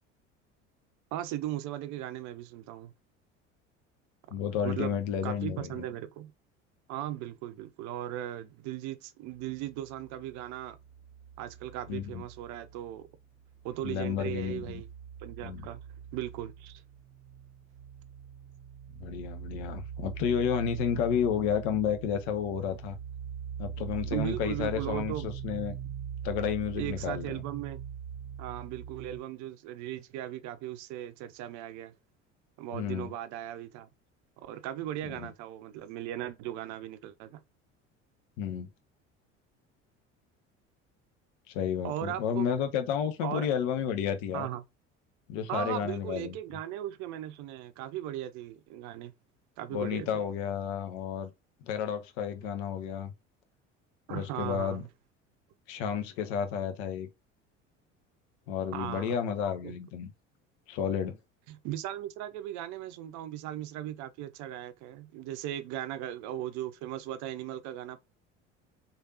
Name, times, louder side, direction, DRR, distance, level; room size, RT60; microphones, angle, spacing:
voice 1, 1.1-2.9 4.6-5.0 5.2-6.3 6.9-10.8 11.4-13.1 13.6-14.9 15.2-15.8 16.1-16.8 24.1-25.2 26.7-27.8 28.4-31.9 32.6-33.9 34.4-37.4 41.8-42.5 43.2-43.5 44.3-44.6 45.5-49.1 49.6-50.2 54.1-54.9 58.7-59.1 59.6-59.8 61.5-68.0, right 12 dB, 50° right, 0.5 m, -37 dB
voice 2, 4.3-5.8 11.9-12.2 13.8-14.8 15.4-15.6 19.0-22.9 23.6-25.8 26.2-27.4 32.7-33.1 35.0-35.3 38.4-38.7 41.5-44.5 45.3-46.3 49.7-51.3 51.6-53.1 54.1-54.8 55.7-57.1 58.5-60.1 60.7-61.2, left 8 dB, 60° left, 0.7 m, -31 dB
sound 1, 9.5-13.1 13.4-29.2, right 8 dB, 20° right, 1.3 m, -42 dB
3.2 x 2.5 x 2.7 m
hypercardioid pair, 65°, 37 cm